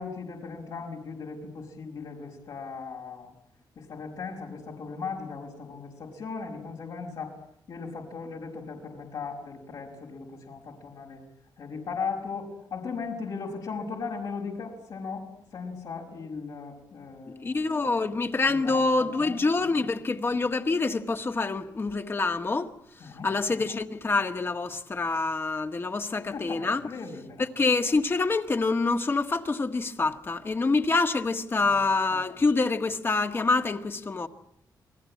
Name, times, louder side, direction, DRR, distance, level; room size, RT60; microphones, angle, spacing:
voice 1, 0.0-3.3 3.8-7.3 7.7-11.2 11.6-17.8 18.4-19.4 23.0-23.3 26.3-27.5 31.6-31.8, left 5 dB, 75° left, 5.4 m, -37 dB
voice 2, 17.4-22.7 23.2-26.8 27.6-34.3, left 3 dB, 30° left, 1.7 m, -26 dB
29.0 x 20.5 x 8.5 m
cardioid pair, 115°, 7 cm